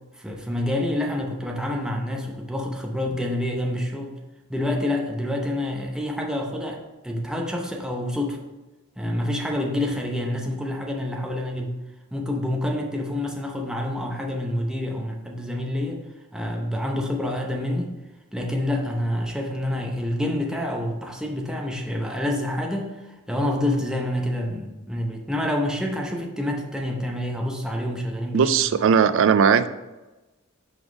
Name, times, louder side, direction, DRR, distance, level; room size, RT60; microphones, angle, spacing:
voice 1, 0.2-4.2 4.5-8.4 9.0-11.8 12.1-16.0 16.3-17.9 18.3-28.5, left 1 dB, 5° right, 0 dB, 0.7 m, -27 dB
voice 2, 28.3-29.7, right 6 dB, 65° right, 13 dB, 0.3 m, -18 dB
5.1 x 4.0 x 4.8 m, 1.1 s
head